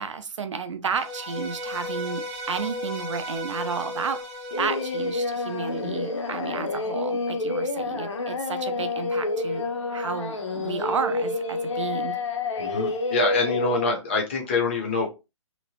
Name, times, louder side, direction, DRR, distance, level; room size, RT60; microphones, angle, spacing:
voice 1, 0.0-4.2 4.6-9.7 9.9-12.2, right 5 dB, 60° right, 0.5 m, -32 dB
sound 1, 0.9-6.1, left 1 dB, 15° right, 0.7 m, -35 dB
Singing, 4.5-13.9, left 3 dB, 60° left, 0.7 m, -28 dB
Wind instrument woodwind instrument, 9.2-14.0, right 6 dB, 35° right, 0.9 m, -52 dB
voice 2, 12.6-15.1, left 3 dB, 20° left, 0.6 m, -25 dB
2.9 x 2.1 x 2.8 m
hypercardioid pair, 175°, 17 cm